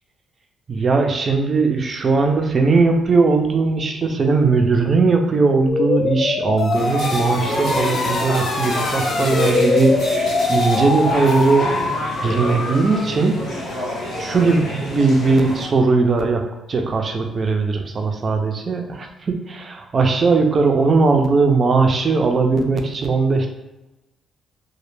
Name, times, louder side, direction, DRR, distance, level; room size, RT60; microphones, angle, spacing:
voice 1, 0.7-11.9 12.2-13.3 14.2-16.4 16.7-23.5, right 4 dB, 40° right, 3 dB, 0.4 m, -19 dB
sound 1, 5.7-13.1, left 3 dB, 50° left, 0.4 m, -23 dB
sound 2, 6.7-15.6, left 1 dB, 85° left, 0.8 m, -28 dB
2.1 x 2.0 x 3.1 m, 0.98 s
cardioid pair, 90°, 0 cm